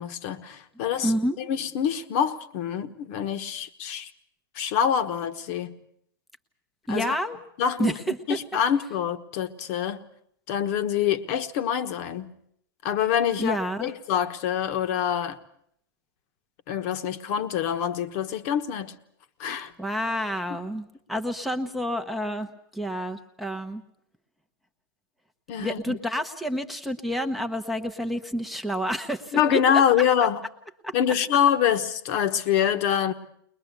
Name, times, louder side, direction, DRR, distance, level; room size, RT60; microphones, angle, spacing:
voice 1, 0.0-4.1 4.5-5.8 6.9-7.2 7.6-8.0 8.3-10.0 10.5-12.3 12.8-15.4 16.7-18.9 19.4-19.7 25.5-26.0 29.3-30.4 30.9-33.1, left 9 dB, 40° left, 1.2 m, -25 dB
voice 2, 1.0-1.3 6.9-7.4 7.8-8.4 13.4-13.9 19.8-23.8 25.6-30.0 30.8-30.9, equal, ahead, 0.9 m, -29 dB
22.0 x 21.0 x 8.1 m
hypercardioid pair, 150°, 12 cm